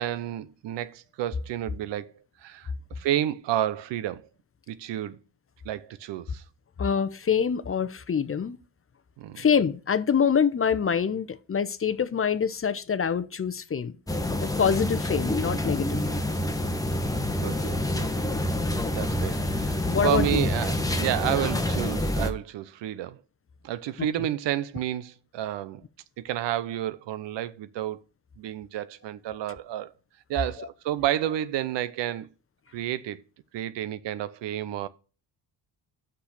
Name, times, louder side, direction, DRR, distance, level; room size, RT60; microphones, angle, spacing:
voice 1, 0.0-2.1 2.4-4.2 4.7-5.2 5.6-6.4 9.2-9.4 17.4-18.3 18.9-23.2 23.6-25.8 26.2-28.0 28.4-29.9 30.3-32.3 32.7-33.2 33.5-34.9, right 12 dB, 75° right, 0.7 m, -30 dB
voice 2, 6.8-8.6 9.4-14.0 14.4-16.2 19.9-20.4 24.0-24.1 30.6-30.7, left 7 dB, 30° left, 0.7 m, -25 dB
sound 1, 14.1-22.3, left 1 dB, 10° left, 1.1 m, -27 dB
6.2 x 5.7 x 6.6 m
cardioid pair, 70°, 43 cm